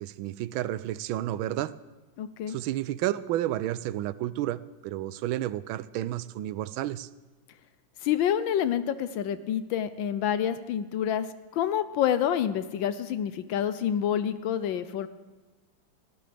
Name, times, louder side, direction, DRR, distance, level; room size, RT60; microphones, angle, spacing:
voice 1, 0.0-1.7 2.5-7.1, right 13 dB, 85° right, 16 dB, 1.4 m, -31 dB
voice 2, 2.2-2.6 8.0-15.1, left 9 dB, 75° left, 13 dB, 1.3 m, -28 dB
20.0 x 15.5 x 3.4 m, 1.3 s
omnidirectional pair, 2.2 m